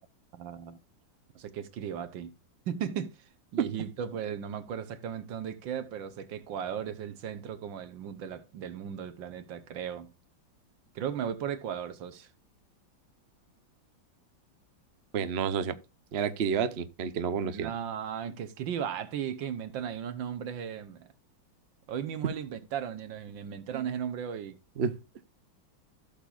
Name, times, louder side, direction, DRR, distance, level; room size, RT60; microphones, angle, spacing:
voice 1, 0.3-0.8 1.3-2.3 2.7-3.2 3.5-10.1 10.9-12.3 17.5-21.1 21.9-24.6, right 8 dB, 75° right, 1.7 m, -36 dB
voice 2, 15.1-15.7 16.1-17.7 24.8-24.9, right 6 dB, 60° right, 0.7 m, -29 dB
15.5 x 6.7 x 2.5 m
omnidirectional pair, 2.1 m